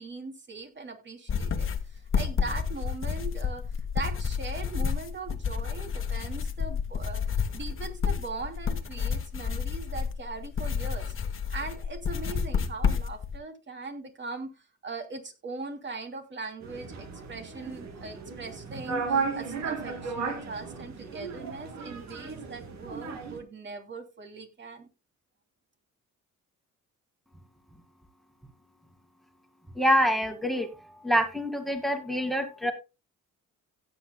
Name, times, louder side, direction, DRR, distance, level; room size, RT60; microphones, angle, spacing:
voice 1, 0.0-3.6 3.9-7.2 7.5-11.1 11.5-14.5 14.8-24.9, right 3 dB, 35° right, 5 dB, 2.9 m, -40 dB
sound 1, 1.3-13.4, left 6 dB, 45° left, 1.4 m, -30 dB
sound 2, 16.6-23.4, right 5 dB, 65° right, 2.8 m, -35 dB
voice 2, 29.8-30.7 31.0-32.7, equal, ahead, 6 dB, 2.1 m, -25 dB
16.5 x 8.1 x 2.2 m, 0.27 s
cardioid pair, 90°, 30 cm